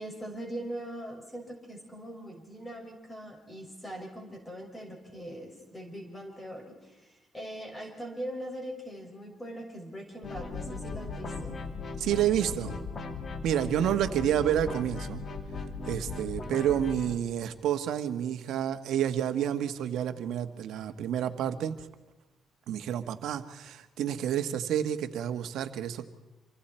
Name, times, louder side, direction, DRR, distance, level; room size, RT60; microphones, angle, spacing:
voice 1, 0.0-11.6, right 1 dB, 15° left, 1 dB, 6.2 m, -41 dB
sound 1, 10.2-17.1, left 4 dB, 45° left, 2.3 m, -38 dB
voice 2, 12.0-12.8 13.4-15.2 15.9-21.8 22.7-26.1, right 10 dB, 80° right, 9 dB, 1.3 m, -29 dB
28.0 x 24.0 x 4.5 m, 1.0 s
cardioid pair, 90°, 0 cm